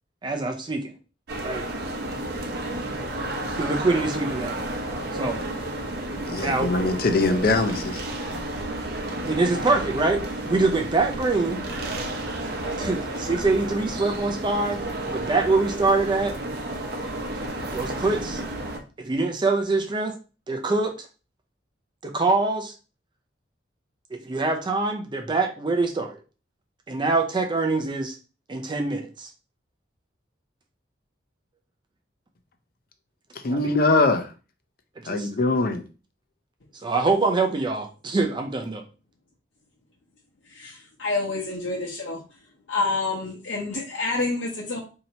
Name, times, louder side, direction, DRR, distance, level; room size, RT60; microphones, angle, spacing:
voice 1, 0.2-0.9 1.4-1.7 3.6-4.5 5.1-5.4 6.4-6.7 9.3-11.6 12.8-16.4 17.7-18.4 19.0-20.1 20.5-21.1 22.0-22.7 24.1-26.2 26.9-28.2 28.5-29.3 33.5-33.7 35.0-35.3 36.8-38.8, right 3 dB, 25° right, 0.4 m, -24 dB
sound 1, 1.3-18.8, right 1 dB, 60° right, 0.7 m, -31 dB
voice 2, 6.3-8.0 33.4-34.3 35.1-35.8, left 2 dB, 50° left, 0.5 m, -22 dB
voice 3, 40.5-42.2 42.7-44.8, left 3 dB, 85° left, 0.8 m, -28 dB
2.8 x 2.8 x 4.2 m
head